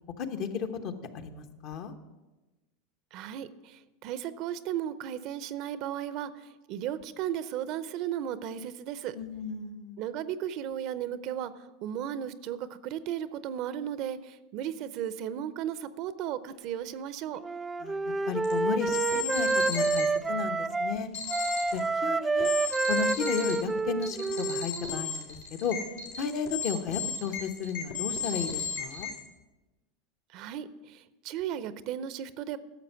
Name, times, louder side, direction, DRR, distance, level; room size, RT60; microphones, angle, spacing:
voice 1, 0.2-1.9 9.1-10.0 17.8-21.1 21.7-22.5 22.9-25.8 26.2-29.1, left 6 dB, 55° left, 7 dB, 1.0 m, -34 dB
voice 2, 3.1-9.1 10.0-17.4 30.3-32.6, right 10 dB, 55° right, 14 dB, 0.6 m, -35 dB
Wind instrument woodwind instrument, 17.4-21.0 21.3-25.1, right 3 dB, 15° right, 0.4 m, -29 dB
sound 1, 18.4-18.5 18.9-20.1 21.1-21.8 22.4-23.6 24.0-29.2, left 6 dB, 80° left, 2.9 m, -35 dB
11.0 x 7.0 x 5.8 m, 1.1 s
hypercardioid pair, 100°, 0 cm